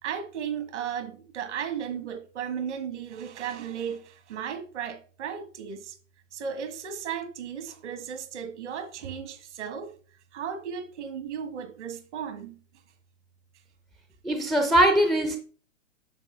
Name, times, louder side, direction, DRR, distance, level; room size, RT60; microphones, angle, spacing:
voice 1, 0.0-6.0 6.3-9.9 10.3-12.6, right 8 dB, 65° right, 1.6 m, -35 dB
voice 2, 14.2-15.4, right 1 dB, ahead, 0.4 m, -21 dB
8.2 x 6.3 x 3.4 m
figure-of-eight pair, 105°, 38 cm